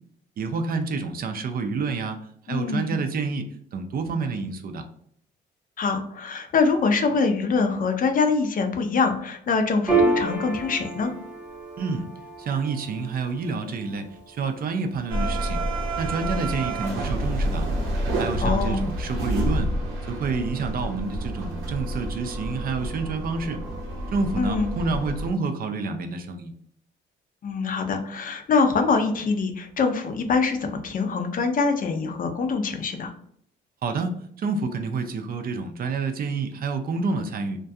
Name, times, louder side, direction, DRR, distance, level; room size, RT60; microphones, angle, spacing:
voice 1, 0.4-2.2 2.5-4.8 11.8-12.1 12.4-15.6 16.0-17.7 18.2-19.7 20.1-23.6 24.1-26.5 33.8-34.1 34.4-37.6, right 4 dB, 50° right, 6 dB, 0.4 m, -28 dB
voice 2, 2.5-3.0 5.8-11.1 18.4-18.8 24.4-24.7 27.4-33.1, left 4 dB, 45° left, 6 dB, 0.4 m, -24 dB
Piano, 9.9-16.8, right 3 dB, 5° right, 0.9 m, -30 dB
sound 1, 15.1-25.3, right 1 dB, 90° right, 0.7 m, -28 dB
2.3 x 2.2 x 2.6 m, 0.64 s
cardioid pair, 90°, 20 cm